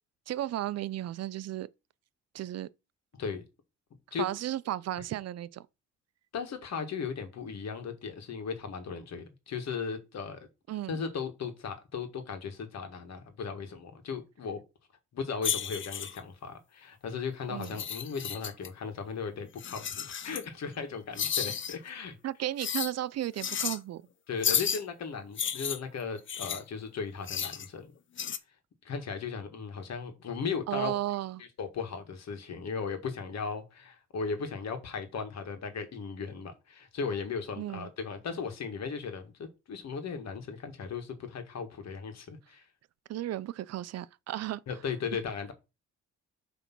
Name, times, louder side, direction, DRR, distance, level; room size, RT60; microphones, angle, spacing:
voice 1, 0.3-1.7 2.3-2.7 4.2-5.7 10.7-11.0 17.5-17.8 22.2-24.0 30.7-31.4 37.6-37.9 43.1-44.6, right 13 dB, 55° right, 0.5 m, -34 dB
voice 2, 3.1-3.4 4.1-4.3 6.3-10.5 10.9-14.6 15.1-22.2 24.3-27.9 28.8-30.9 31.4-42.7 44.7-45.5, left 5 dB, 60° left, 1.8 m, -37 dB
sound 1, 15.4-16.2 17.6-18.7 19.6-20.5 21.2-21.8 22.6-22.9 23.4-23.8 24.4-24.8 25.4-26.6 27.3-27.7 28.2-28.4, left 8 dB, 40° left, 0.7 m, -32 dB
7.8 x 3.5 x 6.0 m
cardioid pair, 90°, 30 cm